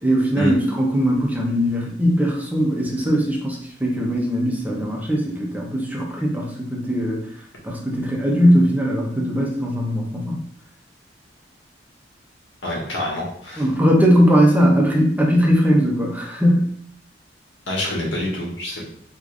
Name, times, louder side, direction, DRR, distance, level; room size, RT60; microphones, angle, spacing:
voice 1, 0.0-7.2 7.6-10.4 13.6-16.7, equal, 10° right, -2 dB, 0.6 m, -19 dB
voice 2, 12.6-13.6 17.7-18.9, left 1 dB, 75° left, -3 dB, 1.2 m, -26 dB
4.8 x 2.5 x 2.4 m, 0.63 s
head